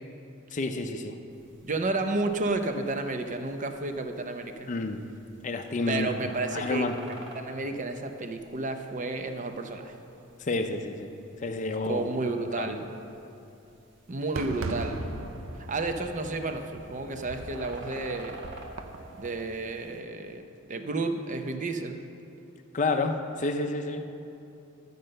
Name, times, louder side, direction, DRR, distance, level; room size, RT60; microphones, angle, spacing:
voice 1, 0.5-1.2 4.7-5.0 5.4-6.1 6.5-7.0 10.4-11.1 11.4-12.1 12.5-12.8 22.7-24.0, left 3 dB, 35° left, 5 dB, 0.5 m, -29 dB
sound 1, 1.3-20.0, right 2 dB, 60° right, 1.1 m, -52 dB
voice 2, 1.6-4.7 5.9-10.0 11.9-12.8 14.1-15.0 15.7-18.4 19.2-22.0, right 2 dB, 40° right, 6 dB, 0.7 m, -31 dB
Fireworks, 14.4-19.4, right 2 dB, 85° right, 0.7 m, -39 dB
12.0 x 5.4 x 7.7 m, 2.8 s
head